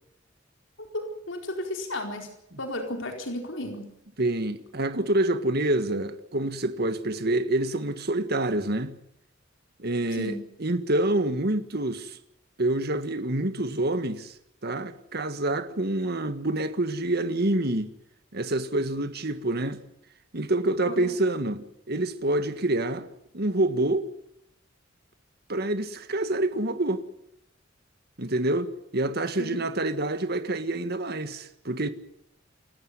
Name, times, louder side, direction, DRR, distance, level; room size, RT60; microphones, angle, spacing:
voice 1, 0.8-3.9 10.1-10.4 20.9-21.1 29.4-29.6, left 1 dB, 75° left, 4.5 m, -34 dB
voice 2, 4.2-9.0 9.8-12.2 12.6-14.3 14.6-17.9 18.3-19.8 20.3-23.1 23.3-24.1 25.5-27.0 28.2-31.9, right 1 dB, 55° right, 1.8 m, -27 dB
29.0 x 14.0 x 9.8 m
head